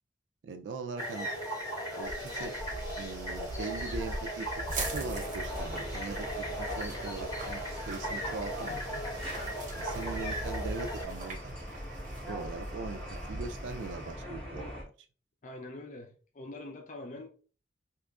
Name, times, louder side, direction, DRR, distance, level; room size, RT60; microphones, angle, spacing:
voice 1, 0.4-1.3 1.9-2.6 3.0-4.5 4.8-9.0 9.7-11.5 12.3-14.7, right 4 dB, 85° right, 6 dB, 0.3 m, -41 dB
sound 1, 1.0-11.0, equal, 25° left, 1.7 m, -38 dB
sound 2, 2.0-14.1, right 2 dB, 45° right, 0.7 m, -41 dB
sound 3, 4.8-14.8, equal, 5° left, 1.0 m, -42 dB
voice 2, 15.4-17.3, left 2 dB, 40° left, 3 dB, 0.4 m, -44 dB
3.6 x 2.9 x 2.3 m, 0.39 s
head